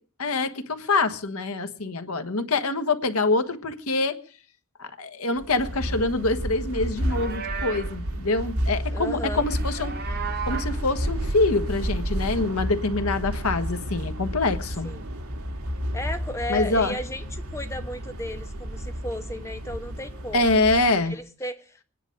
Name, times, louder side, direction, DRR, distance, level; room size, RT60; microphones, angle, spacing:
voice 1, 0.2-4.1 4.8-9.9 10.5-14.9 16.5-16.9 20.3-21.1, left 3 dB, 85° left, 1.4 m, -25 dB
sound 1, 5.4-21.1, equal, 85° right, 1.8 m, -31 dB
Livestock farm animals working animals, 6.8-8.0 9.3-10.8, right 6 dB, 45° right, 1.2 m, -35 dB
voice 2, 8.9-9.5 14.8-15.1 15.9-20.6 21.0-21.8, left 1 dB, 15° left, 1.2 m, -34 dB
24.5 x 10.0 x 5.2 m
head